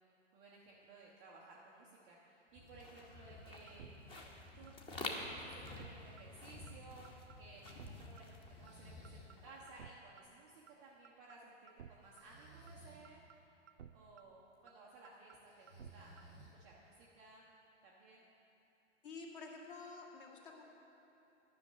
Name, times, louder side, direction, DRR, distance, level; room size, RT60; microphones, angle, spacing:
voice 1, 0.0-3.9 4.5-7.1 7.4-13.2 13.9-16.1 16.5-17.4 17.8-18.2, right 2 dB, 10° right, -5 dB, 0.3 m, -58 dB
sound 1, 2.6-9.8, left 2 dB, 15° left, 0.8 m, -49 dB
sound 2, 3.7-3.9 4.2-4.3 4.7-4.8 5.0-5.4 5.7-5.9 6.2-6.3 6.7-6.8 7.0-7.4 7.7-7.9 8.2-8.3 8.7-8.8 9.0-9.4 9.7-9.9 10.2-10.3 10.7-10.8 11.0-11.4 11.7-11.9 12.2-12.3 12.7-12.8 13.0-13.4 13.7-13.9 14.2-14.3 14.7-14.8 15.0-15.4 15.7-15.9 16.2-16.3, right 9 dB, 75° right, 0.5 m, -55 dB
Breathing, 8.4-9.3 12.0-13.1 15.5-16.9, right 2 dB, 85° left, 2.2 m, -59 dB
voice 2, 19.0-20.6, left 4 dB, 45° left, 0 dB, 1.8 m, -50 dB
10.5 x 6.2 x 8.6 m, 2.9 s
figure-of-eight pair, 110°, 36 cm